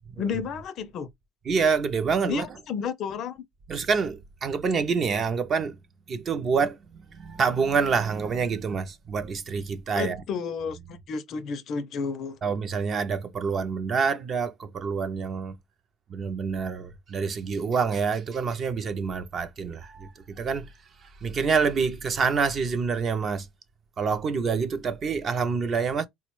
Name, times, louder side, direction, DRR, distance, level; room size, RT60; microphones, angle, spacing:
voice 1, 0.2-1.1 2.2-3.4 9.9-12.4, left 6 dB, 40° left, 0.4 m, -32 dB
voice 2, 1.5-2.5 3.7-5.8 6.1-10.2 12.4-15.6 16.1-20.7 21.0-23.5 24.0-26.1, right 5 dB, 25° right, 0.4 m, -27 dB
4.3 x 2.1 x 3.0 m
cardioid pair, 180°, 0 cm